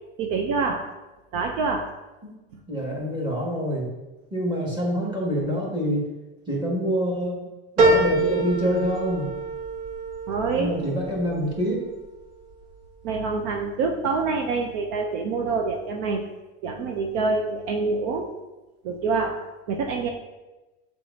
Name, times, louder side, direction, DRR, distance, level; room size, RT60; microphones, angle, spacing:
voice 1, 0.2-0.9 1.3-1.9 10.3-10.7 13.0-16.2 16.6-18.3 18.8-19.4 19.7-20.1, right 4 dB, 60° right, 3 dB, 0.7 m, -26 dB
voice 2, 2.7-3.8 4.3-6.0 6.5-7.5 7.8-9.3 10.6-11.9, equal, 15° right, -4 dB, 1.9 m, -26 dB
sound 1, 7.8-12.5 13.0-13.7 14.1-14.2, right 2 dB, 80° right, 1.6 m, -26 dB
7.3 x 4.8 x 2.8 m, 1.1 s
supercardioid pair, 140°, 36 cm